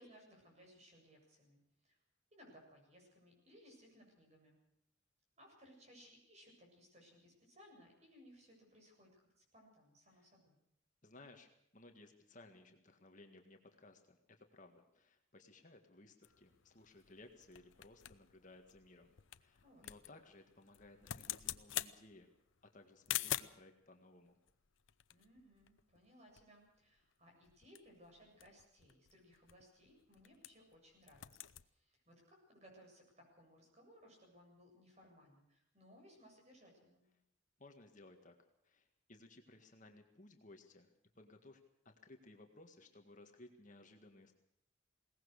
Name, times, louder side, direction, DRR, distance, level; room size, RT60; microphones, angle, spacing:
voice 1, 0.0-2.0 2.3-4.6 5.4-10.6 19.6-19.9 25.1-37.0, equal, 35° right, 1 dB, 7.6 m, -63 dB
voice 2, 11.0-22.3 22.7-24.4 37.6-38.3 38.6-40.9 41.2-44.3, left 2 dB, 40° left, 4 dB, 1.8 m, -60 dB
sound 1, 16.2-23.7 24.5-26.1 26.4-26.5 26.7-27.0 27.4-30.8 31.0-31.7, left 12 dB, 80° left, 0.7 m, -46 dB
21.5 x 18.5 x 6.6 m, 0.75 s
head